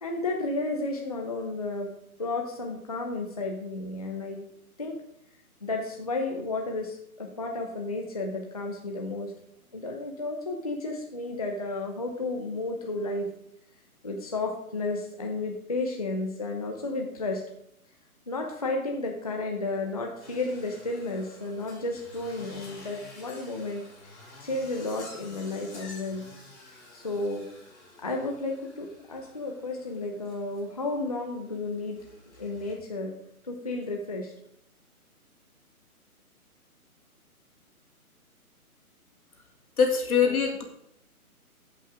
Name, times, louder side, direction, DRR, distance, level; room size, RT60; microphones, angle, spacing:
voice 1, 0.0-4.4 4.8-5.0 5.6-9.3 9.7-13.3 14.0-17.4 18.3-24.2 24.4-26.3 26.9-27.5 28.0-32.0 32.4-33.1 33.4-34.3 40.1-40.4, left 2 dB, 25° left, 1 dB, 0.6 m, -32 dB
sound 1, 20.2-32.7, left 2 dB, 50° left, 4.3 m, -50 dB
voice 2, 39.8-40.6, left 6 dB, 75° left, 2 dB, 2.4 m, -23 dB
14.0 x 5.6 x 3.6 m, 0.76 s
hypercardioid pair, 165°, 44 cm